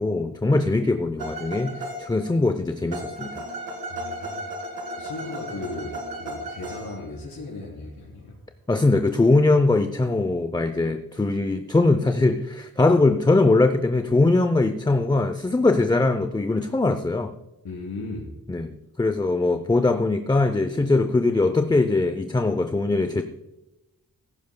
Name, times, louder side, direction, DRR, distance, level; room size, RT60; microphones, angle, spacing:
voice 1, 0.0-3.5 8.7-17.3 18.5-23.2, left 2 dB, 10° left, 8 dB, 0.5 m, -21 dB
sound 1, 1.2-2.3 2.9-7.1, right 1 dB, 85° right, 2.2 m, -35 dB
voice 2, 3.9-4.4 4.9-8.4 17.6-18.3, left 3 dB, 75° left, -6 dB, 3.7 m, -36 dB
16.0 x 15.0 x 2.2 m, 0.97 s
wide cardioid pair, 105°, 36 cm